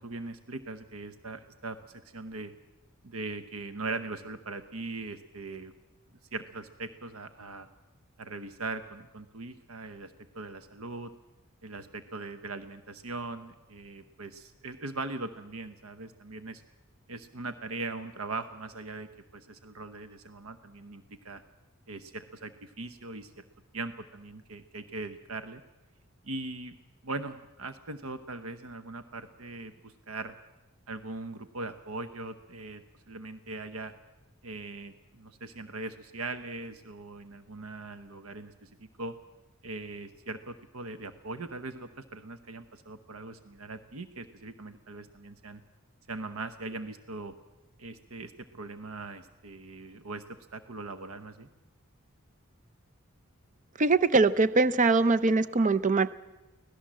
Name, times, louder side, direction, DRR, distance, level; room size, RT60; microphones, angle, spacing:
voice 1, 0.0-2.5 3.0-5.7 6.3-7.7 8.2-11.1 11.6-16.6 17.1-21.4 21.9-23.5 23.7-25.6 26.2-26.7 27.0-30.3 30.9-33.9 34.4-39.1 39.6-45.6 46.1-47.3 47.8-51.5, right 3 dB, 85° right, 11 dB, 0.9 m, -40 dB
voice 2, 53.8-56.1, right 3 dB, 35° right, 13 dB, 0.6 m, -23 dB
24.5 x 17.0 x 7.5 m, 1.1 s
head